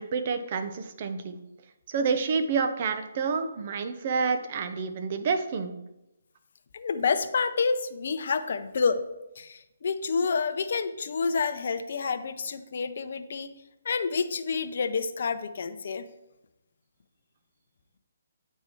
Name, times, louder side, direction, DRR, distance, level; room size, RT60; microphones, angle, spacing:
voice 1, 0.0-1.4 1.9-5.8, right 5 dB, 45° right, 9 dB, 0.8 m, -28 dB
voice 2, 6.7-9.0 9.4-13.5 13.8-16.1, left 5 dB, 60° left, 9 dB, 0.6 m, -28 dB
8.2 x 4.5 x 4.5 m, 0.91 s
hypercardioid pair, 150°, 0 cm